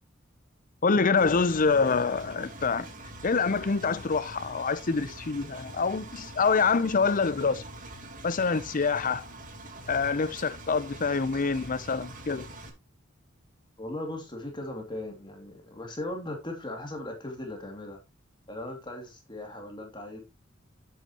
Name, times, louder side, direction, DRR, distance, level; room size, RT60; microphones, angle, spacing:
voice 1, 0.8-2.9 3.2-7.6 8.2-9.2 9.9-12.5, left 4 dB, 45° left, 0.7 m, -26 dB
Engine, 1.2-12.7, right 1 dB, 45° right, 2.6 m, -44 dB
voice 2, 13.8-18.0 18.5-20.2, left 1 dB, 25° left, 2.6 m, -38 dB
9.7 x 8.5 x 3.0 m
head